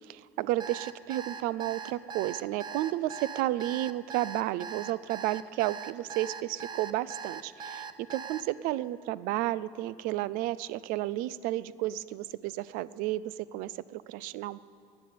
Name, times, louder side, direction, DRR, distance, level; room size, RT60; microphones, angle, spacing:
voice 1, 0.1-14.6, right 15 dB, 80° right, 18 dB, 0.4 m, -32 dB
Alarm, 0.6-8.4, right 6 dB, 30° right, 0.7 m, -40 dB
11.5 x 9.1 x 9.4 m, 2.6 s
cardioid pair, 115°, 15 cm